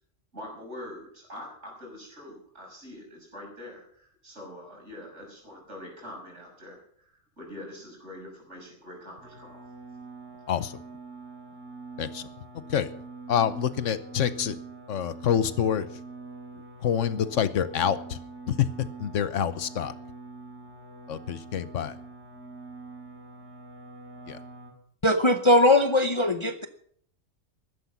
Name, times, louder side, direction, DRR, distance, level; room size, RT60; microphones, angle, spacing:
voice 1, 0.3-9.7, left 1 dB, 65° right, 0 dB, 6.6 m, -44 dB
sound 1, 9.2-24.7, right 3 dB, 90° right, 5.4 m, -44 dB
voice 2, 10.5-10.8 12.0-12.3 12.7-12.9 13.3-14.6 14.9-15.9 16.8-18.2 18.5-19.9 21.1-22.0 24.3-24.4, left 9 dB, 80° left, 14 dB, 1.2 m, -27 dB
voice 3, 25.0-26.7, left 1 dB, 30° left, 8 dB, 0.7 m, -20 dB
14.5 x 12.0 x 5.9 m, 0.63 s
omnidirectional pair, 1.3 m